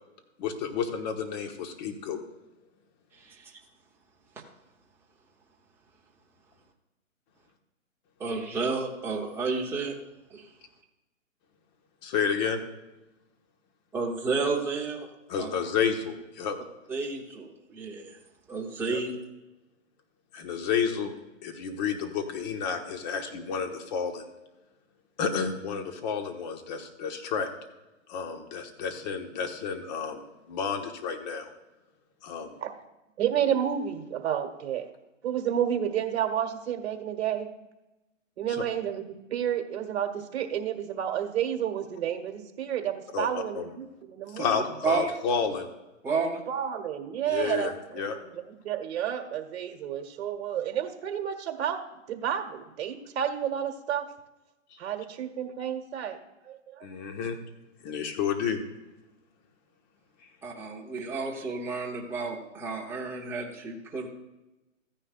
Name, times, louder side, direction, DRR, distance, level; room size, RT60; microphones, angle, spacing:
voice 1, 0.4-2.2 12.0-12.6 15.3-16.6 18.9-19.0 20.3-21.1 21.4-24.2 25.2-27.5 28.1-30.2 30.5-31.5 32.2-32.5 38.5-38.6 43.1-43.7 44.3-45.7 47.3-48.2 56.8-57.4 57.8-58.6, left 6 dB, 35° left, 5 dB, 1.4 m, -31 dB
voice 2, 3.2-3.6 8.2-9.9 10.3-10.5 13.9-15.1 15.4-15.5 16.9-18.2 18.5-19.1 44.8-45.1 46.0-46.4 60.4-64.1, right 4 dB, 5° right, -2 dB, 0.8 m, -31 dB
voice 3, 33.2-34.9 35.2-37.5 38.4-44.6 46.5-51.8 52.1-54.1 54.8-56.2 56.4-56.9, right 9 dB, 55° right, 6 dB, 1.5 m, -31 dB
14.5 x 9.8 x 2.5 m, 1.0 s
hypercardioid pair, 145°, 39 cm